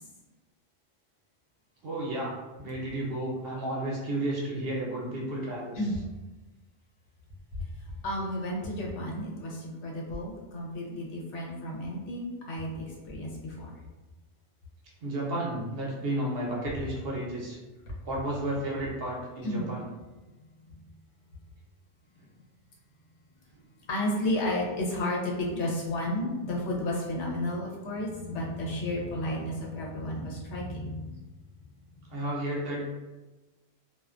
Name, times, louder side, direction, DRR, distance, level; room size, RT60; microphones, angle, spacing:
voice 1, 1.8-5.8 15.0-17.6 18.0-19.8 32.1-32.8, right 1 dB, 60° right, -4 dB, 0.8 m, -32 dB
voice 2, 8.0-13.7 19.4-19.7 23.9-31.1, left 1 dB, 85° left, -3 dB, 0.9 m, -32 dB
2.3 x 2.2 x 2.4 m, 1.1 s
omnidirectional pair, 1.2 m